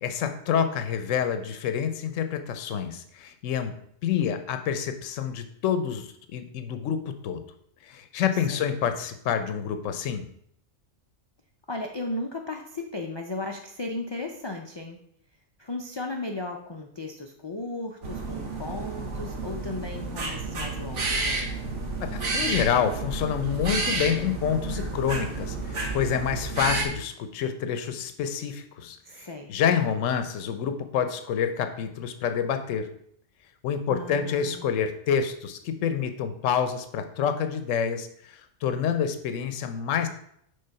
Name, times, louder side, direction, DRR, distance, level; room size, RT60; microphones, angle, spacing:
voice 1, 0.0-3.7 4.0-7.4 7.8-10.3 22.0-32.9 33.6-40.1, left 8 dB, 80° left, 9 dB, 1.0 m, -28 dB
voice 2, 11.7-15.0 15.6-21.5 29.1-29.6 33.9-34.6, left 2 dB, 35° left, 2 dB, 0.4 m, -35 dB
sound 1, 18.0-26.9, right 3 dB, 65° right, 1.4 m, -31 dB
6.7 x 3.6 x 5.6 m, 0.68 s
omnidirectional pair, 1.3 m